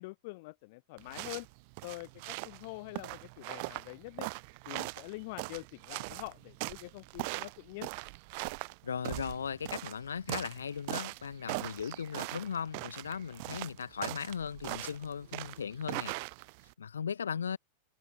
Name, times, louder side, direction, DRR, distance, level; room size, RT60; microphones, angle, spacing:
voice 1, 0.0-1.5 1.8-4.3 4.7-7.9, left 24 dB, 50° left, 3.0 m, -45 dB
sound 1, 1.0-16.7, right 31 dB, 45° right, 1.2 m, -41 dB
voice 2, 8.8-16.1 16.8-17.6, left 7 dB, 70° left, 6.4 m, -37 dB
figure-of-eight pair, 90°, 0 cm